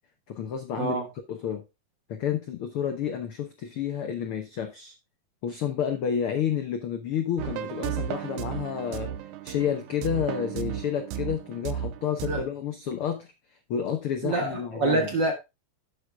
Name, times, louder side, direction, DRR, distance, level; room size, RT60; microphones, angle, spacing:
voice 1, 0.3-1.0 1.3-1.6 2.1-4.9 5.4-9.1 9.4-13.3 13.7-15.1, left 8 dB, 70° left, 1.3 m, -30 dB
sound 1, 7.4-12.4, right 10 dB, 75° right, 2.0 m, -34 dB
voice 2, 14.2-15.3, right 2 dB, 45° right, 1.7 m, -26 dB
11.5 x 8.1 x 2.3 m
omnidirectional pair, 3.8 m